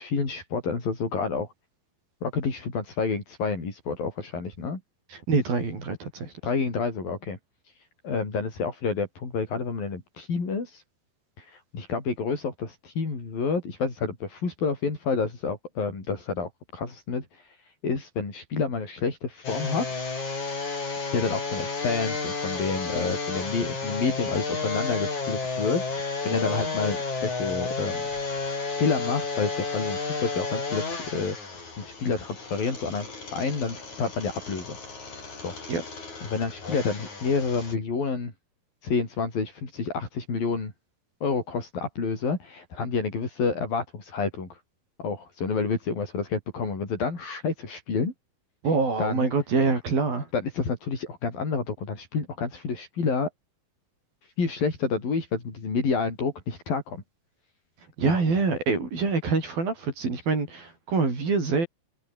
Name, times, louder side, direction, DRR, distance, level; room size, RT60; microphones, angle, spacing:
voice 1, 0.0-1.5 2.2-4.8 6.4-7.4 8.0-10.8 11.4-17.6 17.8-19.9 21.1-28.1 28.7-31.4 31.8-34.8 35.1-35.6 36.2-38.3 38.8-40.7 41.2-44.6 45.0-48.1 49.0-49.3 50.3-53.3 54.4-57.0 58.1-58.2, left 4 dB, 75° left, 8.2 m, -29 dB
voice 2, 5.1-6.3 26.3-26.7 35.7-35.8 48.6-50.3 58.0-61.7, right 4 dB, 80° right, 9.0 m, -25 dB
sound 1, 19.4-37.7, left 4 dB, 50° left, 7.9 m, -32 dB
omnidirectional pair, 4.1 m